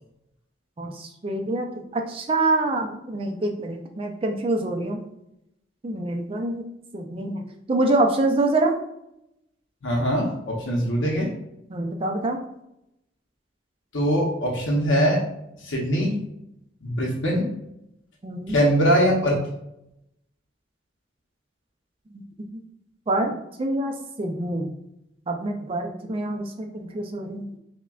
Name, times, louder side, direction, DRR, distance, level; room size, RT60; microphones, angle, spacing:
voice 1, 0.8-5.0 5.8-6.6 6.9-7.4 7.7-8.7 11.7-12.4 18.2-18.6 22.1-22.5 23.1-24.7 25.3-27.5, right 2 dB, 30° right, 3 dB, 0.4 m, -26 dB
voice 2, 9.8-11.3 13.9-15.2 15.6-16.1 16.8-17.4 18.5-19.4, equal, 85° left, -2 dB, 0.7 m, -22 dB
5.8 x 2.2 x 2.3 m, 0.83 s
head